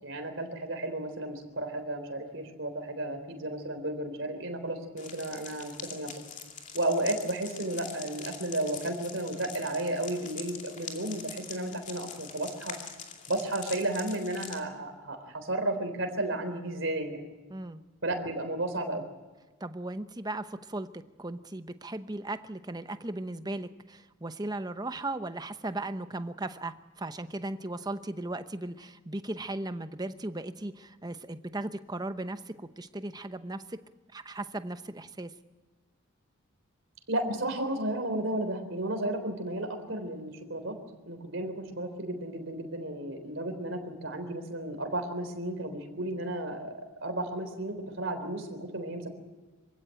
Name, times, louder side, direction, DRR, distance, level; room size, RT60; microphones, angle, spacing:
voice 1, 0.0-6.2 6.7-12.8 13.3-17.2 18.0-19.0 37.1-40.8 41.1-46.7 47.0-49.1, right 1 dB, 60° right, 6 dB, 3.8 m, -33 dB
sound 1, 5.0-14.6, left 6 dB, 35° left, 2.5 m, -44 dB
voice 2, 17.5-17.8 18.9-19.1 19.6-20.9 21.2-33.8 34.1-35.3, right 2 dB, 20° right, 10 dB, 0.8 m, -37 dB
26.0 x 16.0 x 9.1 m, 1.3 s
head